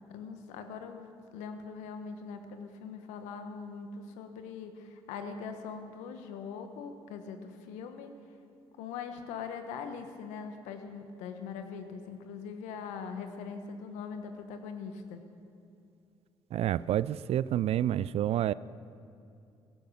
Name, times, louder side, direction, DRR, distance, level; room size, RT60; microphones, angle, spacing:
voice 1, 0.1-8.1 8.8-15.2, left 6 dB, 85° left, 7 dB, 1.2 m, -42 dB
voice 2, 16.5-18.5, right 11 dB, 60° right, 19 dB, 0.4 m, -28 dB
16.0 x 10.5 x 6.7 m, 2.6 s
supercardioid pair, 60°, 12 cm